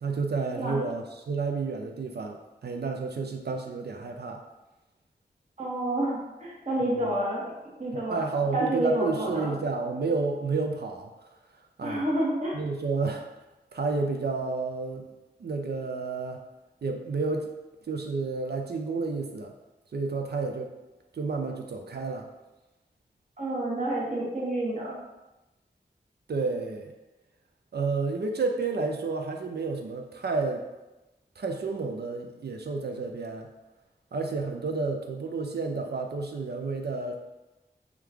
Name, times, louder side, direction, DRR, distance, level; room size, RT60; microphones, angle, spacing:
voice 1, 0.0-4.4 6.8-7.1 7.9-11.1 11.8-12.1 12.5-13.2 13.7-15.1 15.4-16.4 16.8-17.5 17.9-19.5 19.9-20.7 21.1-22.3 26.3-26.9 27.7-30.6 31.4-33.5 34.1-37.2, right 4 dB, 65° right, 3 dB, 0.4 m, -30 dB
voice 2, 0.5-0.9 5.6-7.5 7.8-8.2 8.5-9.5 11.8-12.6 23.4-25.0, right 1 dB, 40° right, -5 dB, 1.1 m, -29 dB
3.0 x 2.4 x 3.4 m, 1.0 s
cardioid pair, 45°, 18 cm